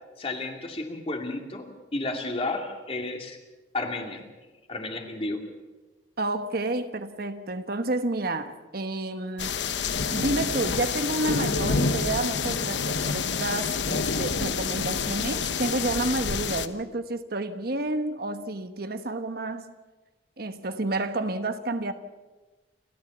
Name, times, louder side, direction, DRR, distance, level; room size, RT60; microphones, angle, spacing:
voice 1, 0.2-3.4 3.7-4.2 4.7-5.4, left 2 dB, 30° left, 2.5 m, -32 dB
voice 2, 6.2-9.5 10.1-19.7 20.4-21.9, right 2 dB, 55° right, 1.2 m, -30 dB
sound 1, 9.4-16.7, left 5 dB, 75° left, 1.0 m, -28 dB
29.5 x 13.5 x 7.2 m
head